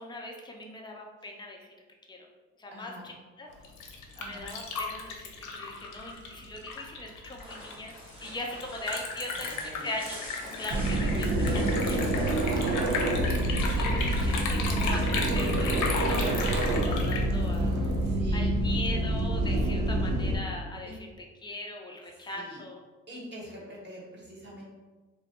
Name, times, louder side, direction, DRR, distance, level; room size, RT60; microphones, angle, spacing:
voice 1, 0.0-1.7 2.1-2.2 2.6-3.5 4.3-7.9 8.2-12.2 12.6-12.9 13.6-17.7 18.3-22.8, left 1 dB, 15° left, 0 dB, 0.5 m, -40 dB
voice 2, 2.7-3.1 4.1-4.5 9.3-9.9 10.4-10.7 12.4-13.0 18.0-18.5 20.8-20.9 22.2-22.6 23.1-24.6, equal, 35° right, -5 dB, 1.3 m, -44 dB
Liquid, 3.5-18.1, left 4 dB, 80° left, 0.6 m, -35 dB
sound 1, 7.4-15.1, equal, 15° right, 1.1 m, -46 dB
sound 2, 10.7-20.4, right 1 dB, 65° right, 0.6 m, -27 dB
2.6 x 2.3 x 3.6 m, 1.3 s
cardioid pair, 90°, 30 cm